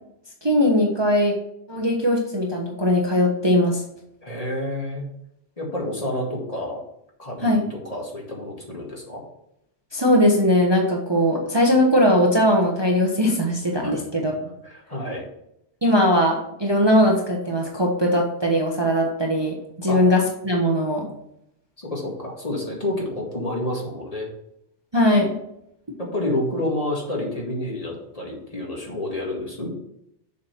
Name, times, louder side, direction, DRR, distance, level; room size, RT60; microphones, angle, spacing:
voice 1, 0.4-1.3 1.7-3.8 7.4-7.6 9.9-14.3 15.8-21.1 24.9-25.3, left 1 dB, 20° right, -1 dB, 1.2 m, -20 dB
voice 2, 4.2-5.1 5.6-6.8 7.2-9.2 13.8-15.2 19.9-20.0 21.8-24.3 26.0-29.7, left 1 dB, 30° left, -2 dB, 2.1 m, -29 dB
7.2 x 5.1 x 5.7 m, 0.78 s
omnidirectional pair, 1.2 m